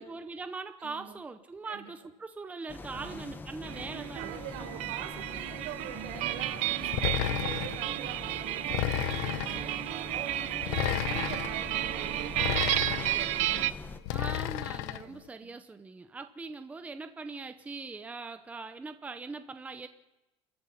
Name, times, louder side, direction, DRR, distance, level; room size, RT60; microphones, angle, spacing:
voice 1, 0.0-4.4 14.1-19.9, right 4 dB, 10° right, 8 dB, 0.8 m, -41 dB
voice 2, 0.8-1.2 1.6-1.9 2.9-3.3 4.2-9.7 10.1-13.8 15.0-15.6, right 8 dB, 85° right, 4 dB, 4.7 m, -45 dB
sound 1, 2.7-14.0, left 3 dB, 15° left, 1.0 m, -44 dB
sound 2, 3.6-13.7, right 14 dB, 55° right, 0.8 m, -33 dB
sound 3, 6.9-7.8 8.7-9.6 10.6-11.5 12.4-13.2 14.1-15.0, left 15 dB, 85° left, 0.9 m, -32 dB
29.0 x 14.0 x 7.1 m, 1.0 s
cardioid pair, 165°, 14 cm